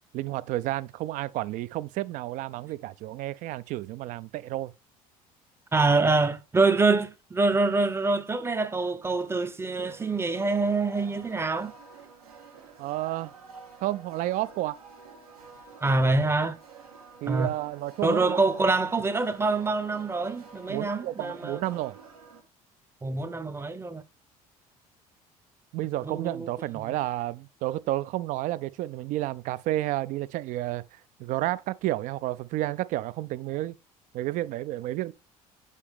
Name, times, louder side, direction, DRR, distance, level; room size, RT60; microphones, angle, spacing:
voice 1, 0.1-4.7 12.8-13.3 13.8-14.8 17.2-18.4 20.7-22.0 25.7-30.8 31.2-33.8 34.1-35.1, right 15 dB, 45° right, 0.4 m, -31 dB
voice 2, 5.7-11.7 15.8-16.6 17.3-17.5 18.0-21.6 23.0-24.0 26.0-26.5 26.8-26.9, right 3 dB, 15° right, 0.7 m, -25 dB
sound 1, 9.8-22.4, right 5 dB, 75° right, 1.2 m, -50 dB
8.2 x 5.0 x 3.4 m
figure-of-eight pair, 60°, 19 cm